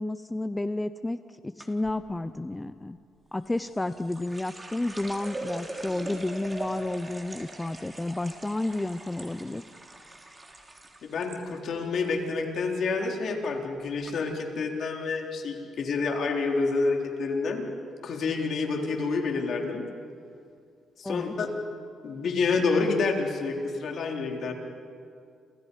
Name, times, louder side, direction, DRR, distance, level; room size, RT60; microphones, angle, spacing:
voice 1, 0.0-3.0 3.3-9.6 21.0-21.4, left 2 dB, 15° left, 12 dB, 0.6 m, -31 dB
sound 1, 1.6-2.0 3.4-11.4 11.7-12.3 12.6-13.0 13.6-13.7 14.0-14.1, right 2 dB, 20° right, 3.7 m, -41 dB
voice 2, 11.0-17.6 18.0-19.8 21.0-21.5 22.0-24.5, left 4 dB, 60° left, 2 dB, 3.8 m, -28 dB
29.5 x 27.5 x 5.5 m, 2.4 s
cardioid pair, 90°, 0 cm